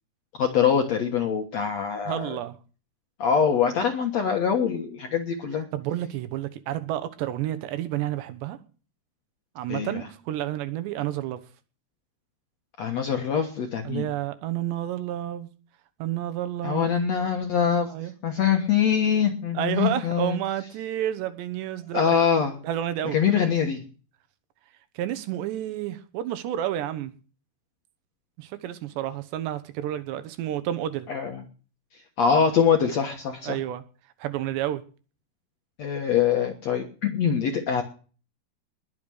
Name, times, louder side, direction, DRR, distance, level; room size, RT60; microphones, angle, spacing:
voice 1, 0.4-2.4 3.2-5.7 9.7-10.0 12.8-14.1 16.6-17.9 18.2-20.4 21.9-22.6 23.1-23.8 31.1-31.4 32.2-33.6 35.8-37.8, left 7 dB, 65° left, 3 dB, 1.8 m, -24 dB
voice 2, 2.1-2.6 5.7-8.6 9.6-11.4 13.8-15.5 16.0-17.0 17.9-18.1 19.5-22.3 22.6-23.2 25.0-27.1 28.4-31.1 33.4-33.8 34.2-34.8, right 12 dB, 80° right, 11 dB, 3.3 m, -30 dB
21.0 x 7.1 x 6.3 m, 0.38 s
omnidirectional pair, 5.0 m